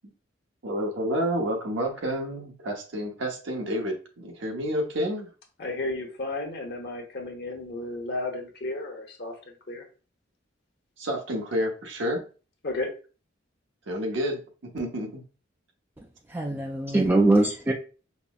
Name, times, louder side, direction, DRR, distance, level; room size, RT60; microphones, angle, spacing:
voice 1, 0.6-5.3 11.0-12.3 13.9-15.2 17.7-17.8, equal, 75° right, 0.8 m, -30 dB
voice 2, 5.6-9.8 12.6-12.9, left 2 dB, 55° left, 0.9 m, -33 dB
voice 3, 16.3-17.7, right 2 dB, 10° right, 0.3 m, -22 dB
5.3 x 2.0 x 2.3 m
head